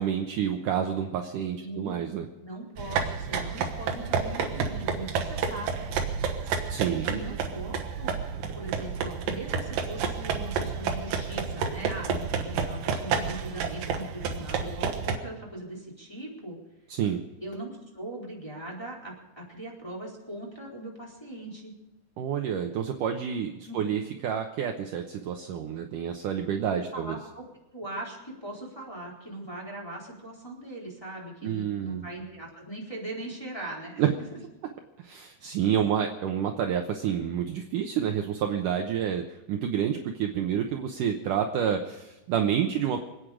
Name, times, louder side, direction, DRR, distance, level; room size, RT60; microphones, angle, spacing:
voice 1, 0.0-2.3 6.7-7.2 16.9-17.2 22.2-27.2 31.4-32.1 34.0-34.1 35.0-43.0, right 8 dB, 80° right, 4 dB, 1.9 m, -29 dB
voice 2, 1.6-2.0 2.4-5.8 6.4-8.2 8.5-16.6 17.4-21.7 23.7-23.8 26.7-27.4 27.7-34.4, right 1 dB, 5° left, -4 dB, 3.6 m, -40 dB
sound 1, 2.8-15.2, right 6 dB, 65° right, 2.7 m, -30 dB
27.5 x 9.4 x 5.1 m, 1.0 s
omnidirectional pair, 5.0 m